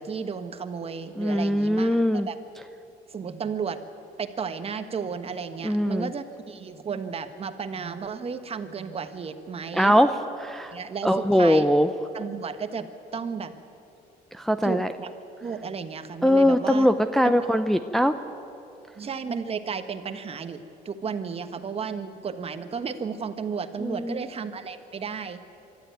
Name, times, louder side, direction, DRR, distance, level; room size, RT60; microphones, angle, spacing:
voice 1, 0.0-2.4 3.1-3.8 4.2-9.9 10.7-11.6 12.1-13.6 14.6-15.1 15.4-16.9 19.0-25.4, right 6 dB, 35° right, 9 dB, 1.4 m, -33 dB
voice 2, 1.2-2.3 5.6-6.1 9.7-10.8 11.0-11.9 14.3-14.9 16.2-18.2 23.8-24.2, equal, ahead, 7 dB, 0.6 m, -21 dB
24.5 x 13.0 x 9.2 m, 2.8 s
cardioid pair, 110°, 17 cm